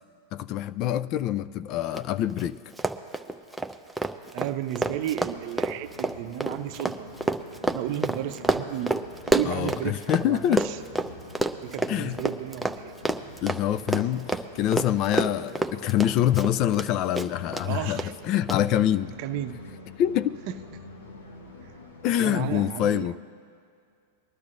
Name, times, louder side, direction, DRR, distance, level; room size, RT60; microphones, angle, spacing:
voice 1, 0.3-2.6 9.5-10.7 11.9-12.2 13.4-19.1 20.0-20.4 22.0-23.2, left 11 dB, 45° left, 15 dB, 0.4 m, -25 dB
Run, 1.9-2.0 2.3-2.4 2.7-10.2 10.5-16.9 17.1-17.6 18.0-18.1 18.5-18.6, right 1 dB, ahead, 0.6 m, -28 dB
voice 2, 4.3-7.1 7.7-9.0 9.2-10.8 11.6-12.9 17.6-18.1 19.2-19.6 20.5-20.6 22.2-23.2, right 12 dB, 55° right, 10 dB, 0.6 m, -33 dB
sound 1, 4.8-22.6, left 3 dB, 85° left, 1.3 m, -46 dB
21.0 x 12.0 x 2.5 m, 2.4 s
hypercardioid pair, 105°, 0 cm